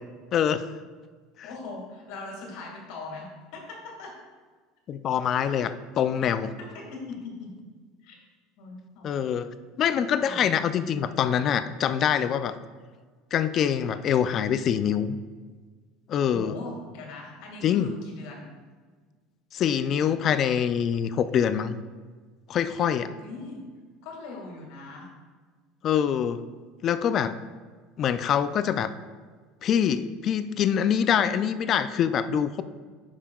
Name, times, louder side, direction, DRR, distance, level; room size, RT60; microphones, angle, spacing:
voice 1, 0.3-0.6 1.4-1.5 4.9-6.5 9.0-9.5 9.8-12.5 13.3-15.2 16.1-16.6 17.6-17.9 19.5-21.7 22.5-23.1 25.8-26.4 26.8-27.4 28.0-28.9 29.6-32.6, left 8 dB, 35° left, 12 dB, 0.3 m, -25 dB
voice 2, 1.4-4.1 5.2-5.3 6.6-7.5 8.0-8.2 8.6-9.2 10.2-11.0 16.3-18.4 23.1-23.6 24.0-25.1, left 3 dB, 75° left, -1 dB, 1.9 m, -40 dB
9.8 x 5.5 x 2.3 m, 1.5 s
cardioid pair, 145°, 0 cm